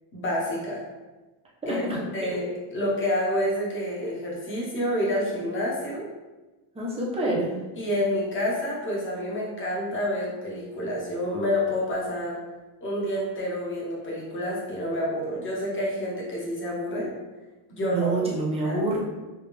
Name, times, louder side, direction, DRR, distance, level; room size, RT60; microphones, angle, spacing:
voice 1, 0.1-0.8 1.7-1.8 2.1-6.0 7.8-12.4 12.8-17.1 17.7-18.1 18.6-18.8, left 1 dB, 25° left, -4 dB, 0.8 m, -28 dB
voice 2, 1.6-2.0 6.7-7.6 17.8-19.0, right 2 dB, 15° right, -4 dB, 0.5 m, -27 dB
3.3 x 2.3 x 3.4 m, 1.2 s
cardioid pair, 170°, 47 cm